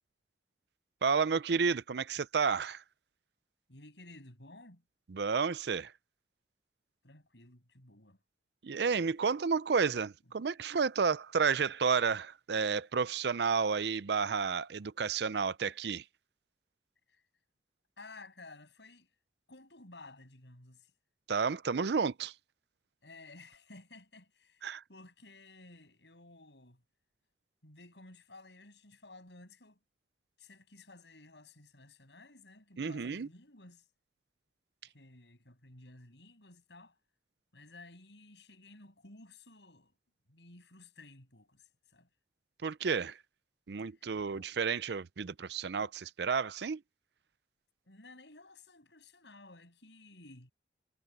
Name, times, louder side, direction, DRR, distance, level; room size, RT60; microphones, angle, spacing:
voice 1, 1.0-2.8 5.1-5.9 8.6-16.0 21.3-22.3 24.6-24.8 32.8-33.3 42.6-43.2 43.7-46.8, right 5 dB, 70° right, 0.5 m, -31 dB
voice 2, 3.7-4.8 7.0-8.2 10.2-10.3 17.1-17.2 18.0-19.1 19.5-20.9 23.0-26.8 27.6-29.8 30.4-33.9 34.9-37.0 37.5-39.9 40.3-42.1 43.9-44.5 47.8-50.5, left 2 dB, 80° left, 7.9 m, -55 dB
head